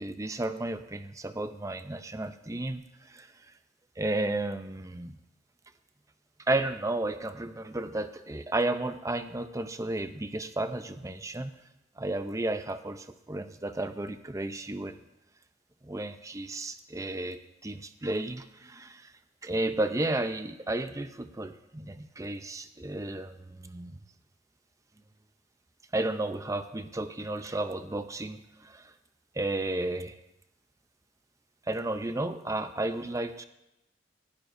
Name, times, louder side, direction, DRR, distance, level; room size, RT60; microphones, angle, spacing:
voice 1, 0.0-3.3 4.0-5.2 6.5-11.5 12.0-14.9 15.8-19.1 19.4-24.0 25.9-28.9 29.3-30.2 31.7-33.5, right 2 dB, 20° right, 10 dB, 0.6 m, -33 dB
18.0 x 11.5 x 2.6 m, 0.89 s
head